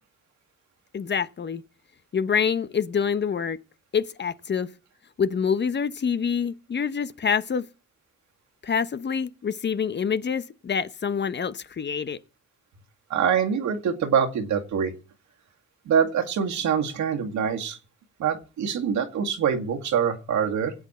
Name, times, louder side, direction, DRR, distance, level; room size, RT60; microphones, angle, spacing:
voice 1, 0.9-1.6 2.1-3.6 3.9-4.7 5.2-7.7 8.6-12.2, left 6 dB, 35° left, 0.9 m, -26 dB
voice 2, 13.1-14.9 15.9-17.8 18.2-20.7, right 7 dB, 70° right, 2.1 m, -24 dB
18.0 x 8.4 x 4.3 m
cardioid pair, 90°, 30 cm